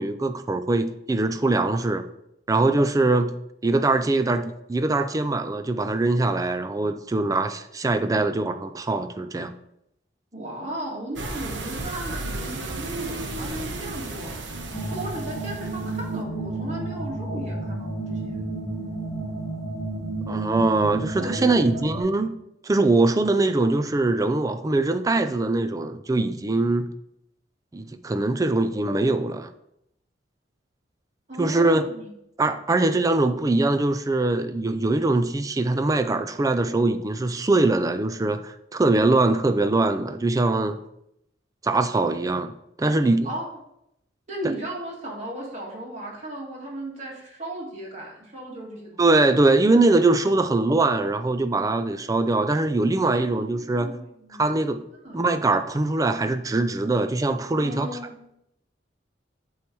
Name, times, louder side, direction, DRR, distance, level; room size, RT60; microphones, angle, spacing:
voice 1, 0.0-2.1 2.5-3.3 3.6-9.5 20.3-22.4 22.6-26.9 27.7-29.5 31.4-31.9 32.4-40.8 41.6-42.5 42.8-43.3 49.0-53.9 54.4-54.8 55.1-57.9, right 2 dB, 20° right, 0.4 m, -22 dB
voice 2, 10.3-14.4 14.9-18.5 20.9-21.8 31.3-32.1 43.2-43.5 44.3-49.2 53.1-54.6 55.0-55.2 57.6-58.1, right 1 dB, 40° right, 1.8 m, -36 dB
sound 1, 11.2-16.1, right 2 dB, 80° right, 0.9 m, -34 dB
sound 2, 14.7-22.0, right 2 dB, 20° left, 1.1 m, -31 dB
8.4 x 3.2 x 4.6 m
head